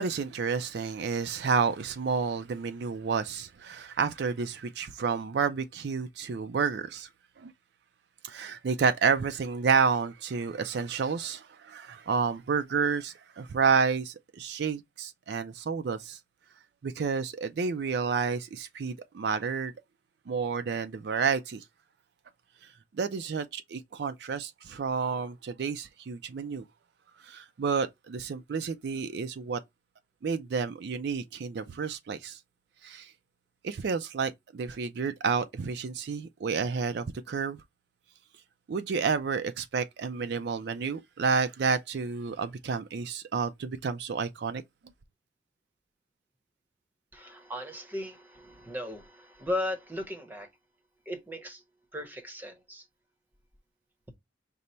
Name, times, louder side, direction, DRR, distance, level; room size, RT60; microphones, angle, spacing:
voice 1, 0.0-7.1 7.4-7.5 8.2-16.2 16.8-19.7 20.3-21.6 23.0-26.6 27.2-29.6 30.2-32.4 32.8-33.1 33.6-37.6 38.7-44.6, right 5 dB, 60° right, 0.4 m, -30 dB
voice 2, 47.1-50.5 51.1-51.6 51.9-52.9, left 1 dB, 10° right, 0.8 m, -36 dB
5.2 x 2.0 x 4.2 m
head